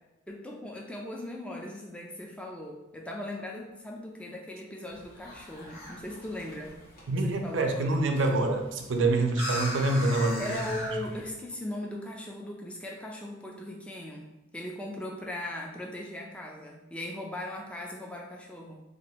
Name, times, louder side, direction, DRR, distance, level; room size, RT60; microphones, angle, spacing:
voice 1, 0.3-6.8 7.2-7.9 10.4-18.8, left 1 dB, 5° left, -1 dB, 0.3 m, -39 dB
sound 1, 4.9-11.3, equal, 50° left, 0.9 m, -40 dB
voice 2, 7.1-10.6, right 2 dB, 75° right, 5 dB, 0.5 m, -26 dB
2.8 x 2.5 x 4.2 m, 1.0 s
head